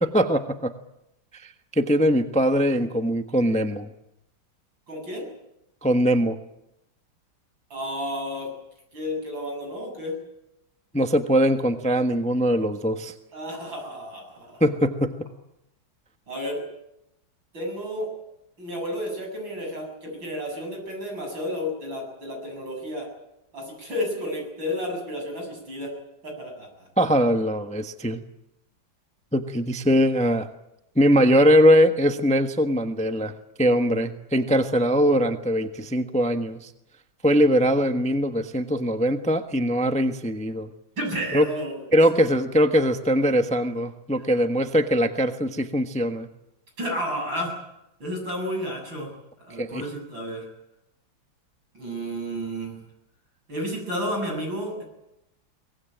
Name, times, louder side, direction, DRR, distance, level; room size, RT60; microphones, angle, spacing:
voice 1, 0.0-0.7 1.3-3.9 5.8-6.4 10.9-13.1 14.6-15.3 27.0-28.2 29.3-30.5 30.9-36.7 37.2-40.7 41.3-41.4 41.9-46.3 49.6-49.8, equal, 5° left, 7 dB, 0.9 m, -21 dB
voice 2, 4.9-5.3 7.7-8.5 8.9-10.2 13.3-14.6 16.3-16.6 17.5-18.1 18.6-23.1 23.5-25.9 26.2-26.9 41.0-42.0 46.8-47.6 48.0-49.1 49.5-50.4 51.7-52.8 53.5-54.8, equal, 75° right, 2 dB, 8.4 m, -31 dB
24.0 x 19.0 x 9.1 m, 0.87 s
omnidirectional pair, 2.1 m